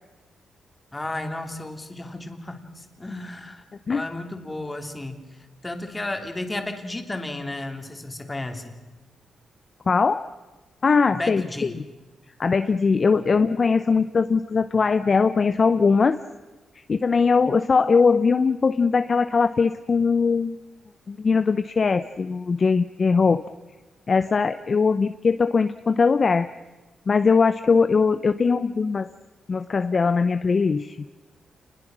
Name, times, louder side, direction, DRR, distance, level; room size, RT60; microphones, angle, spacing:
voice 1, 0.9-3.6 3.9-8.8 11.1-11.8, left 2 dB, 20° left, 5 dB, 2.8 m, -33 dB
voice 2, 9.9-10.3 10.8-11.7 12.4-16.2 16.9-20.6 21.1-23.4 24.1-26.5 27.1-29.1 29.5-31.0, left 5 dB, 40° left, 11 dB, 0.7 m, -20 dB
28.5 x 21.0 x 6.2 m, 1.2 s
cardioid pair, 105°, 0 cm